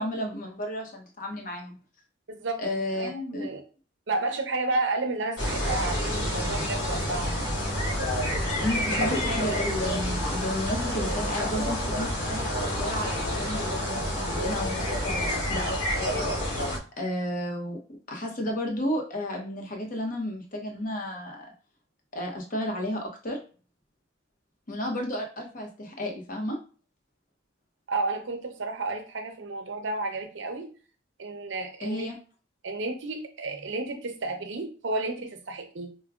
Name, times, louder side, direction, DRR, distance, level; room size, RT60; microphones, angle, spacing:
voice 1, 0.0-1.8 2.6-3.5 8.6-16.6 17.0-17.8 18.1-21.5 22.1-23.4 24.7-26.6 31.8-32.2, left 1 dB, 45° left, 2 dB, 0.8 m, -32 dB
voice 2, 2.3-2.6 3.0-3.6 4.1-7.3 27.9-30.7 31.2-32.1 32.6-35.9, right 2 dB, 70° right, 4 dB, 0.7 m, -31 dB
sound 1, 5.4-16.8, equal, 80° left, 1.1 m, -28 dB
4.7 x 2.1 x 2.3 m, 0.38 s
head